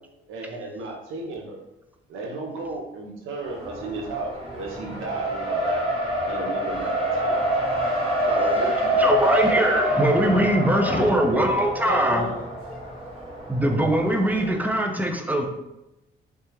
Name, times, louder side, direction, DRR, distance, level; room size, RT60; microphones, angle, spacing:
voice 1, 0.3-1.6 2.1-5.9 6.2-7.5 8.3-9.1, right 2 dB, 90° right, 1 dB, 0.8 m, -33 dB
Race car auto racing, 3.4-14.5, right 1 dB, 25° right, 1.2 m, -26 dB
voice 2, 9.0-12.3 13.5-15.5, right 1 dB, 10° right, 3 dB, 0.5 m, -22 dB
voice 3, 10.7-11.2 11.8-13.3, left 4 dB, 45° left, 2 dB, 0.5 m, -32 dB
3.3 x 3.3 x 2.9 m, 0.95 s
cardioid pair, 90°, 20 cm